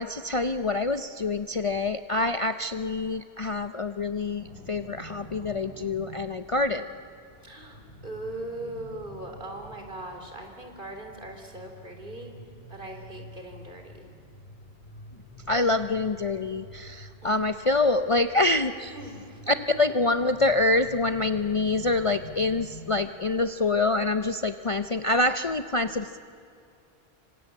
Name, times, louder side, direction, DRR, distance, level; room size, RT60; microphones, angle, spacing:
voice 1, 0.0-6.9 15.5-18.9 19.5-26.2, left 2 dB, 35° left, 9 dB, 0.6 m, -26 dB
sound 1, 4.3-22.8, equal, 70° left, 4.7 m, -48 dB
voice 2, 7.4-12.3 12.7-14.1 17.2-17.4 18.9-19.4, right 1 dB, 50° right, 4 dB, 3.9 m, -40 dB
26.5 x 25.5 x 8.6 m, 2.5 s
omnidirectional pair, 1.1 m